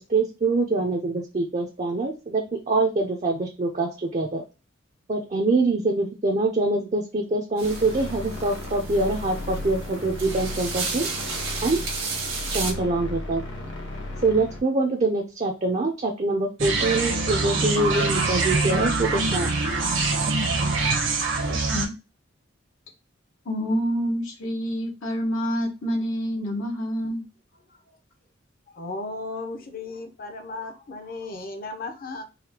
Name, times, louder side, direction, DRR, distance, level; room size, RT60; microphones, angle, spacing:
voice 1, 0.0-4.4 5.1-11.1 11.6-11.8 12.5-13.4 14.2-19.5, right 2 dB, 35° right, 2 dB, 0.4 m, -24 dB
sound 1, 7.6-14.6, left 1 dB, 65° left, 1.0 m, -35 dB
sound 2, 7.6-12.7, right 4 dB, 85° right, 1.4 m, -33 dB
sound 3, 16.6-21.9, right 3 dB, 70° right, 0.9 m, -24 dB
voice 2, 21.5-21.9 23.5-27.2, equal, 85° left, 0 dB, 1.0 m, -27 dB
voice 3, 28.7-32.2, left 3 dB, 45° left, 5 dB, 0.6 m, -35 dB
4.1 x 2.3 x 2.8 m, 0.30 s
head